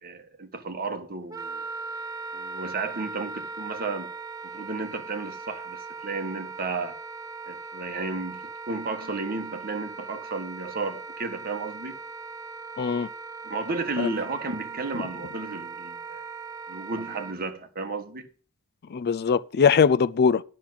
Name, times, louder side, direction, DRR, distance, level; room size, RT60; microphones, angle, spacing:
voice 1, 0.0-1.6 2.3-4.1 4.4-7.0 7.5-8.4 8.7-12.0 13.4-16.2 16.7-18.3, right 3 dB, 45° right, 1.4 m, -33 dB
Wind instrument woodwind instrument, 1.3-17.4, right 4 dB, 15° right, 0.8 m, -39 dB
voice 2, 12.8-13.1 14.0-14.1 18.9-20.4, left 6 dB, 45° left, 0.4 m, -21 dB
10.5 x 6.1 x 7.9 m
head